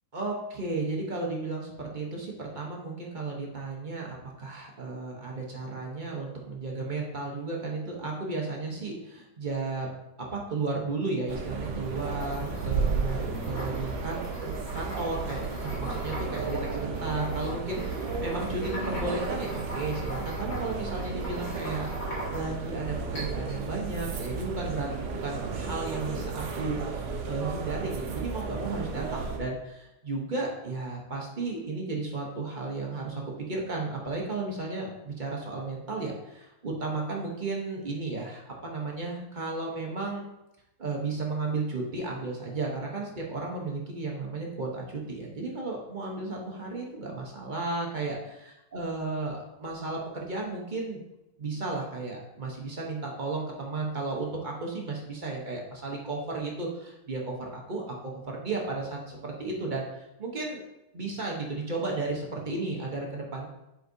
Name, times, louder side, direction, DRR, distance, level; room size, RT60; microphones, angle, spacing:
voice 1, 0.1-9.9 10.2-21.9 22.3-33.2 33.5-40.2 40.8-51.0 51.4-60.6 60.9-63.5, right 3 dB, 35° right, -1 dB, 0.8 m, -34 dB
sound 1, 11.3-29.4, right 4 dB, 80° right, 1.3 m, -33 dB
sound 2, 11.7-22.7 23.2-23.6, equal, 85° left, 2.7 m, -41 dB
7.7 x 4.6 x 2.6 m, 0.92 s
omnidirectional pair, 1.9 m